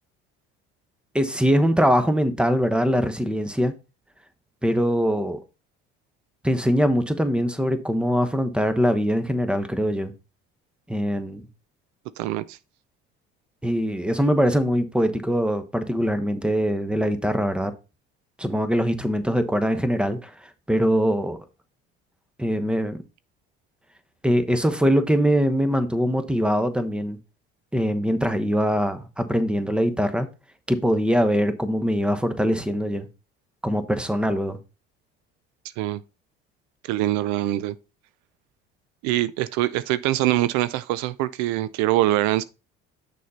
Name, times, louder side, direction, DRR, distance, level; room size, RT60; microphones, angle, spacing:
voice 1, 1.1-3.7 4.6-5.4 6.4-10.1 10.9-11.4 13.6-17.7 18.4-21.4 22.4-23.0 24.2-27.2 27.7-30.3 30.7-33.1 33.6-34.6, equal, 5° right, 1.0 m, -22 dB
voice 2, 12.2-12.6 35.8-36.0 36.9-37.7 39.0-42.4, right 15 dB, 70° right, 0.5 m, -23 dB
6.4 x 5.6 x 4.1 m
supercardioid pair, 75°, 29 cm